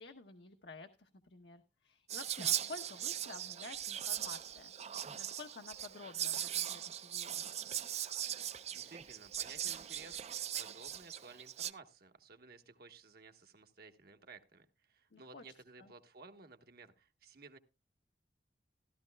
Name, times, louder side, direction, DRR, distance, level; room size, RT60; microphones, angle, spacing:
voice 1, 0.0-7.5 15.1-15.4 15.8-15.9, left 3 dB, 70° left, 5 dB, 0.9 m, -51 dB
Whispering, 2.1-11.7, right 10 dB, 40° right, 0.5 m, -39 dB
voice 2, 8.7-10.3 10.6-17.6, right 4 dB, 60° right, 6 dB, 1.2 m, -56 dB
15.0 x 12.5 x 2.2 m, 0.28 s
head